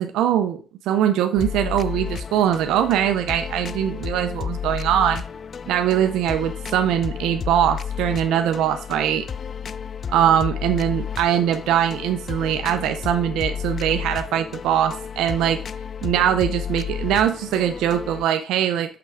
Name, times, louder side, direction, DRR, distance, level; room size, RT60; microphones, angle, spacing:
voice 1, 0.0-5.2 5.7-9.2 10.1-15.6 16.0-19.0, right 10 dB, 90° right, 7 dB, 0.7 m, -22 dB
sound 1, 1.4-18.3, left 7 dB, 45° left, 0.4 m, -32 dB
7.0 x 5.9 x 4.9 m, 0.35 s
cardioid pair, 90°, 0 cm